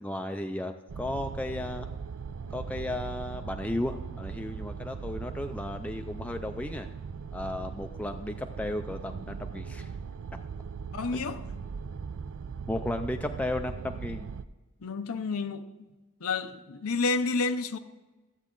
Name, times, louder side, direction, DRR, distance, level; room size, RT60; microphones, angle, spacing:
voice 1, 0.0-1.9 2.5-6.9 7.3-9.9 12.7-14.3, left 1 dB, 5° left, 0.3 m, -34 dB
sound 1, 0.9-14.4, right 5 dB, 65° right, 0.4 m, -39 dB
voice 2, 10.9-11.4 14.8-15.7 16.2-17.8, left 4 dB, 85° left, 0.6 m, -30 dB
13.5 x 8.1 x 3.8 m
head